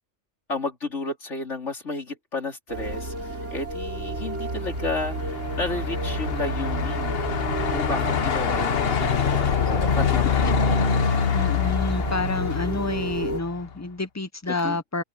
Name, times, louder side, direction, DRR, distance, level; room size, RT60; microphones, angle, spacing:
voice 1, 0.5-7.2 7.7-11.5 14.5-14.8, left 3 dB, 80° left, 3.8 m, -33 dB
sound 1, 2.7-13.4, right 2 dB, 85° right, 4.0 m, -31 dB
Truck, 4.3-13.7, left 7 dB, 60° left, 1.2 m, -25 dB
voice 2, 11.3-15.0, left 2 dB, 20° left, 0.5 m, -29 dB
omnidirectional pair, 1.2 m